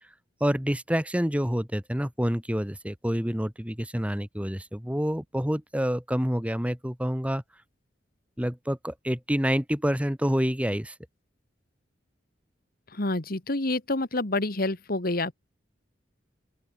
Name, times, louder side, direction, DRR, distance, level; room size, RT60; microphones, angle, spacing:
voice 1, 0.4-7.4 8.4-11.0, equal, 5° right, 2.3 m, -27 dB
voice 2, 12.9-15.3, left 2 dB, 50° left, 1.9 m, -28 dB
open air
head